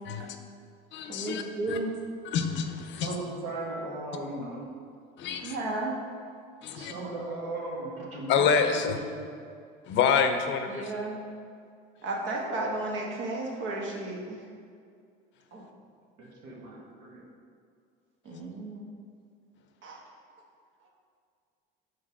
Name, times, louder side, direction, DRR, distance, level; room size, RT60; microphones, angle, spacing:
voice 1, 0.1-0.4 0.9-1.4 1.7-1.8 2.2-3.1 5.2-5.6 6.6-6.9 8.3-9.0 9.9-10.9, left 6 dB, 60° left, 7 dB, 0.6 m, -27 dB
voice 2, 1.1-1.9 5.4-6.0 10.7-11.2 12.0-14.4 15.5-15.6 18.2-18.8 19.8-20.0, right 2 dB, 60° right, -1 dB, 1.3 m, -33 dB
voice 3, 3.0-4.6 6.7-9.3 16.2-17.2, right 2 dB, 85° right, -3 dB, 1.5 m, -37 dB
5.2 x 3.8 x 5.9 m, 2.3 s
supercardioid pair, 95°, 21 cm